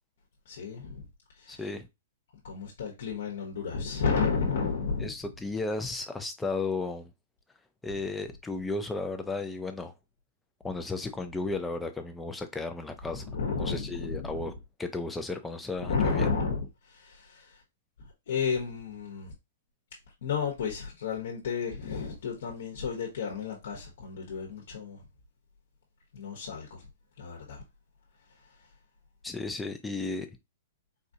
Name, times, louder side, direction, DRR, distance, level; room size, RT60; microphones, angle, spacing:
voice 1, 0.4-1.1 1.3-1.7 2.4-5.2 13.1-14.6 15.8-17.6 18.0-19.3 20.2-25.0 26.1-26.9 27.2-27.6 28.3-28.6, left 5 dB, 70° left, 1.0 m, -32 dB
voice 2, 1.5-1.9 5.0-7.1 7.8-9.9 10.6-13.3 13.6-14.5 14.8-16.3 29.2-30.4, left 3 dB, 10° left, 0.6 m, -34 dB
4.2 x 2.4 x 2.7 m
hypercardioid pair, 125°, 0 cm